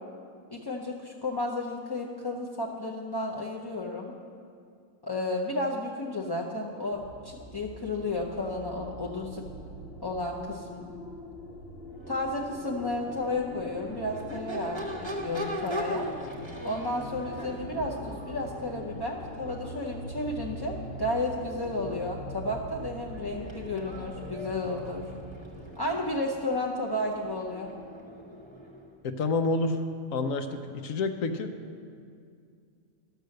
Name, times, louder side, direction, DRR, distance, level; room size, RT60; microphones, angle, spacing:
voice 1, 0.5-4.1 5.0-9.4 10.0-10.9 12.1-16.1 16.6-25.0 25.8-27.7, left 2 dB, 30° left, -3 dB, 0.4 m, -32 dB
sound 1, 6.9-25.7, right 1 dB, 50° left, 1.2 m, -43 dB
Crowd / Race car auto racing / Accelerating revving vroom, 11.9-28.9, equal, 25° right, 1.0 m, -41 dB
voice 2, 29.0-29.8 30.1-31.5, left 3 dB, 75° left, 7 dB, 1.1 m, -28 dB
11.5 x 6.7 x 6.5 m, 2.3 s
omnidirectional pair, 1.4 m